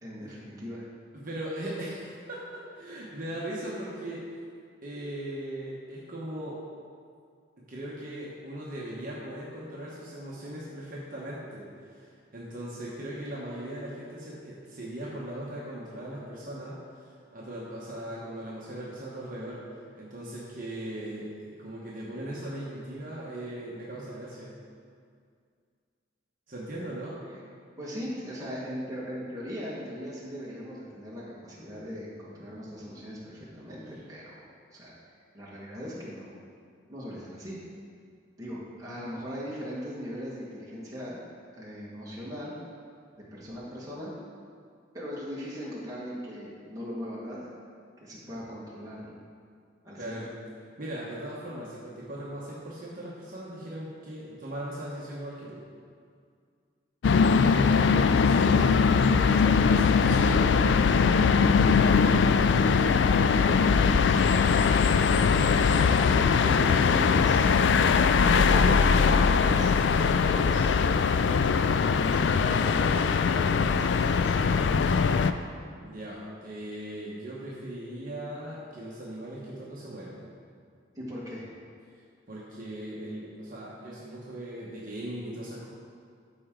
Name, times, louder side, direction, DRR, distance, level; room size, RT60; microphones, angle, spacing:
voice 1, 0.0-0.8 27.8-34.3 34.7-35.0 35.3-36.4 36.9-37.6 38.4-41.3 41.5-42.6 43.1-44.1 44.9-47.5 48.0-49.2 49.8-50.2 66.6-67.4 68.2-70.8 71.7-74.9 80.9-81.5, equal, 20° right, -7 dB, 1.7 m, -39 dB
voice 2, 1.1-4.2 4.8-6.6 7.7-19.6 19.9-24.5 26.5-27.2 50.0-50.3 50.8-55.6 58.2-58.7 59.2-61.0 65.5-66.8 75.8-80.2 82.3-85.7, right 1 dB, 45° right, -6 dB, 1.2 m, -39 dB
sound 1, 57.0-75.3, left 5 dB, 65° left, 0.3 m, -21 dB
13.0 x 4.5 x 3.8 m, 2.2 s
head